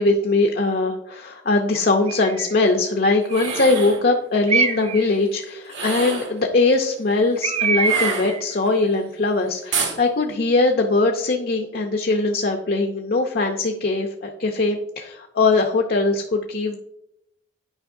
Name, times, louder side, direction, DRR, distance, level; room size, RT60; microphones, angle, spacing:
voice 1, 0.0-16.8, left 3 dB, 55° left, 3 dB, 0.6 m, -21 dB
Bird, 2.1-2.5 3.3-3.8 4.5-5.1 7.4-8.4, right 5 dB, 35° right, 0.5 m, -24 dB
sound 1, 3.2-4.0 5.7-6.4 7.8-8.7 9.7-10.0, right 4 dB, 85° right, 1.6 m, -28 dB
9.7 x 5.4 x 2.6 m, 0.79 s
head